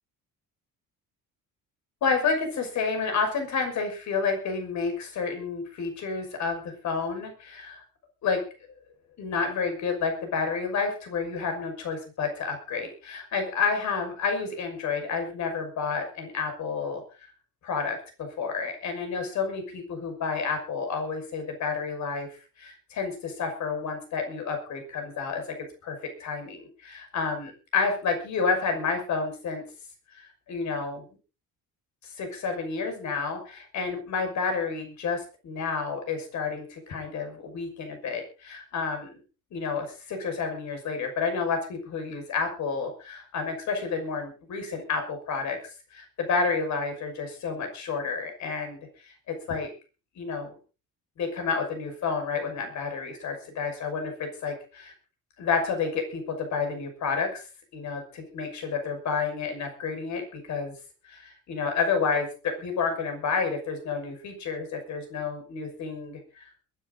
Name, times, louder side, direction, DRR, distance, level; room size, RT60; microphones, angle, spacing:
voice 1, 2.0-7.8 8.2-8.4 9.2-17.0 17.6-25.6 25.8-29.6 30.1-31.0 32.0-39.1 39.5-45.6 45.9-49.7 50.2-50.5 51.2-54.9 55.4-57.5 57.7-60.7 61.0-66.5, left 5 dB, 55° left, 5 dB, 6.0 m, -30 dB
22.0 x 11.0 x 4.0 m, 0.34 s
cardioid pair, 165°, 33 cm